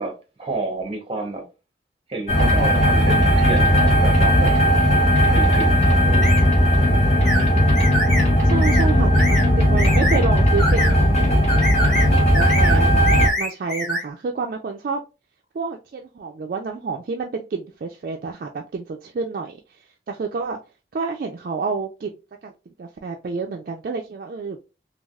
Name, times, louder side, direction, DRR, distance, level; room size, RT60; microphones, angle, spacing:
voice 1, 0.0-1.4 2.1-4.5 5.3-6.5, right 3 dB, 30° right, 0.8 m, -30 dB
sound 1, 2.3-13.3, equal, 40° left, 0.9 m, -17 dB
sound 2, 6.2-6.4 7.3-7.4 7.8-8.3 8.6-8.9 9.1-9.5 9.8-10.2 10.6-10.9 11.5-12.1 12.3-12.8 13.1-14.0, equal, 5° left, 1.6 m, -25 dB
voice 2, 8.5-11.5 12.1-15.0 15.5-20.6 20.9-22.1 22.4-22.5 22.8-24.6, right 4 dB, 55° right, 0.3 m, -29 dB
3.3 x 2.3 x 2.2 m
head